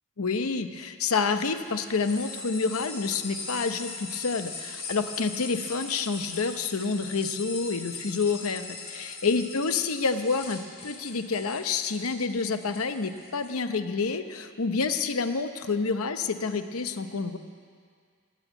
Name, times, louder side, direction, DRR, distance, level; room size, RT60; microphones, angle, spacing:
voice 1, 0.2-17.4, left 4 dB, 70° left, 9 dB, 0.8 m, -28 dB
sound 1, 1.6-13.5, left 4 dB, 45° left, 2.2 m, -40 dB
15.0 x 9.3 x 9.1 m, 2.1 s
head